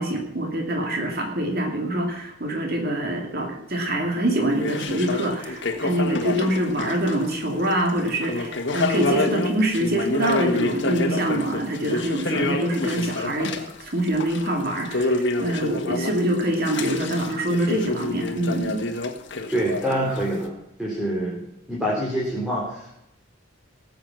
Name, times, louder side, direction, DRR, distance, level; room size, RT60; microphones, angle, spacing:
voice 1, 0.0-13.5 13.8-18.9, right 1 dB, 45° right, 2 dB, 2.4 m, -25 dB
sound 1, 4.5-7.4 7.7-20.4, left 2 dB, 55° left, 1.5 m, -28 dB
voice 2, 19.5-20.5 20.8-21.4 21.7-22.9, right 1 dB, 5° right, -5 dB, 3.4 m, -25 dB
19.0 x 7.8 x 5.9 m, 0.82 s
head